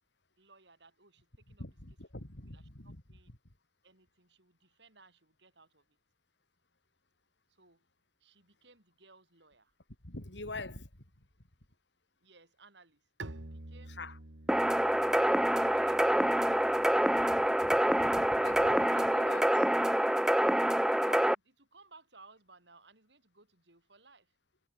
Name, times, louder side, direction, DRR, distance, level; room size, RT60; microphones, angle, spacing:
voice 1, 0.4-1.6 2.5-3.3 3.8-5.8 7.5-7.8 8.2-9.7 12.2-13.0 13.5-14.0 15.1-17.6 20.9-24.3, right 3 dB, 65° right, 6.3 m, -60 dB
voice 2, 1.5-3.4 10.0-11.1 13.9-14.2 17.4-20.0 20.3-20.6, left 2 dB, 65° left, 3.4 m, -46 dB
Bowed string instrument, 13.2-18.8, right 2 dB, 80° right, 1.9 m, -50 dB
sound 1, 14.5-21.3, right 1 dB, 5° right, 0.3 m, -26 dB
head